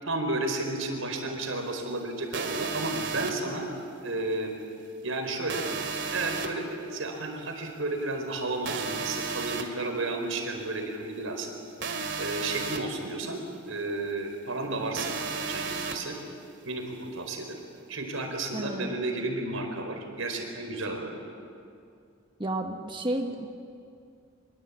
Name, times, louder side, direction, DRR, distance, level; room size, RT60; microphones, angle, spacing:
voice 1, 0.0-3.7 4.0-4.5 5.0-5.6 6.1-11.5 12.2-13.4 13.7-16.2 16.6-17.6 17.9-21.2, right 2 dB, 90° right, 4 dB, 4.6 m, -32 dB
sound 1, 2.3-3.3 5.5-6.5 8.6-9.6 11.8-12.8 15.0-15.9, right 5 dB, 60° right, 2.5 m, -33 dB
voice 2, 18.5-19.0 22.4-23.5, right 1 dB, 25° right, 4 dB, 1.2 m, -32 dB
25.5 x 23.0 x 8.7 m, 2.4 s
head